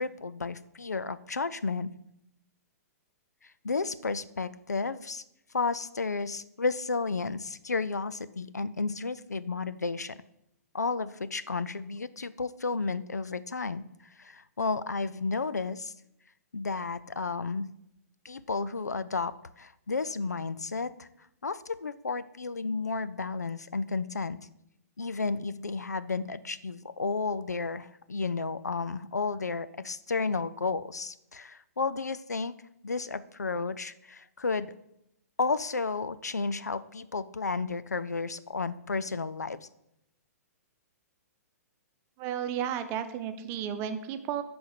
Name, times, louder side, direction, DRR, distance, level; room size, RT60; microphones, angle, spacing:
voice 1, 0.0-1.9 3.4-5.2 5.5-10.2 10.7-13.9 14.2-15.9 16.5-17.7 18.2-21.1 21.4-24.4 25.0-32.5 32.8-34.7 35.4-39.7, left 4 dB, 75° left, 15 dB, 0.5 m, -32 dB
voice 2, 42.2-44.4, right 9 dB, 30° right, 9 dB, 0.8 m, -33 dB
11.0 x 4.3 x 6.7 m, 0.81 s
figure-of-eight pair, 115°, 9 cm